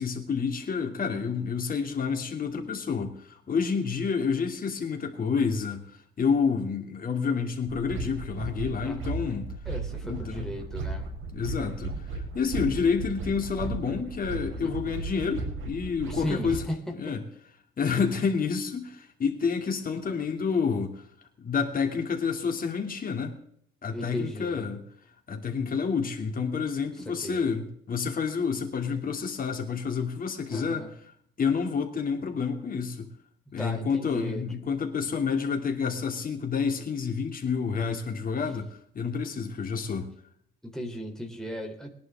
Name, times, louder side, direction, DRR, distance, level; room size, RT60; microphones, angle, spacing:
voice 1, 0.0-5.9 6.2-9.5 10.0-10.5 11.3-11.9 12.3-16.6 16.9-17.2 17.8-21.0 21.4-23.4 23.8-24.8 25.3-30.9 31.4-33.1 33.5-40.1, left 5 dB, 45° left, 3 dB, 3.0 m, -29 dB
sound 1, 7.7-16.7, right 3 dB, 85° right, 4.0 m, -35 dB
voice 2, 8.8-9.1 9.7-11.1 14.6-14.7 16.0-16.8 23.9-24.7 27.2-27.4 30.5-30.9 33.6-34.4 40.6-41.9, equal, 5° left, 0 dB, 3.7 m, -36 dB
21.5 x 11.0 x 3.8 m, 0.65 s
cardioid pair, 90°, 20 cm